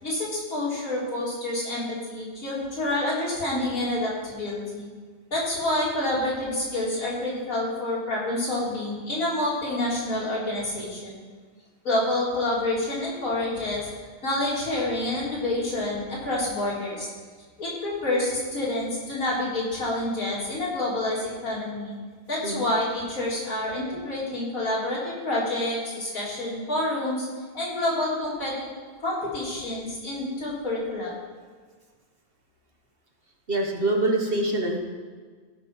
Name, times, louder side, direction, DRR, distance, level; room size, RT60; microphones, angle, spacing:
voice 1, 0.0-4.9 5.3-11.2 11.8-13.8 14.2-17.1 17.6-21.9 22.3-27.3 27.5-28.7 29.0-31.1, left 1 dB, 80° left, -6 dB, 3.7 m, -28 dB
voice 2, 33.5-34.8, right 2 dB, 45° right, 2 dB, 1.3 m, -25 dB
15.5 x 5.3 x 6.0 m, 1.5 s
omnidirectional pair, 1.4 m